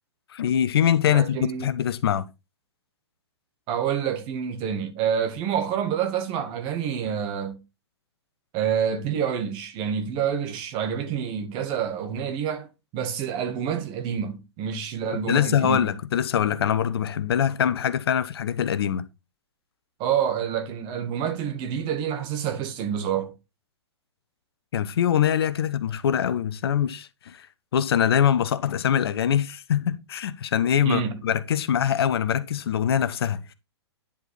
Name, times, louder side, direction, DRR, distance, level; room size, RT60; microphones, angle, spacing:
voice 1, 0.3-2.3 15.3-19.0 24.7-27.5 27.7-33.5, left 9 dB, 65° left, 0.9 m, -23 dB
voice 2, 1.1-1.7 3.7-7.6 8.5-12.7 12.9-15.9 20.0-23.3 30.8-31.2, right 8 dB, 35° right, 1.8 m, -27 dB
10.5 x 4.4 x 4.3 m
hypercardioid pair, 120°, 14 cm